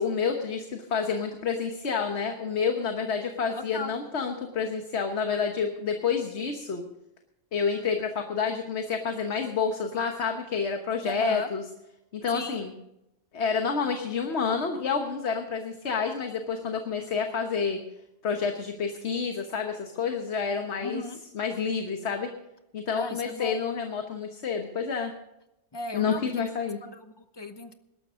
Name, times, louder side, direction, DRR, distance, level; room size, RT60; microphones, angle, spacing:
voice 1, 0.0-6.8 7.5-11.6 12.1-12.7 13.3-17.8 18.2-21.0 21.3-22.3 22.7-25.1 25.9-26.8, left 5 dB, 65° left, 4 dB, 1.5 m, -29 dB
voice 2, 11.0-11.5 12.3-12.6 20.8-21.2 23.0-23.6 25.7-26.5 26.8-27.7, left 2 dB, 25° left, 9 dB, 0.9 m, -37 dB
21.0 x 12.0 x 3.7 m, 0.89 s
omnidirectional pair, 1.2 m